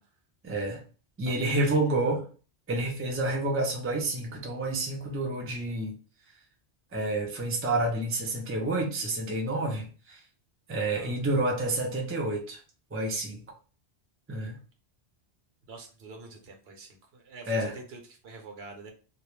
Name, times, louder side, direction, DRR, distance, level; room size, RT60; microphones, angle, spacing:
voice 1, 0.4-0.8 1.2-2.2 2.7-5.9 6.9-10.2 10.7-12.6 12.9-13.4 14.3-14.6 17.5-17.7, right 2 dB, 20° right, 0 dB, 0.4 m, -29 dB
voice 2, 1.3-2.2 11.0-11.2 15.7-18.9, right 3 dB, 70° right, 3 dB, 0.9 m, -46 dB
2.3 x 2.1 x 3.1 m, 0.38 s
omnidirectional pair, 1.1 m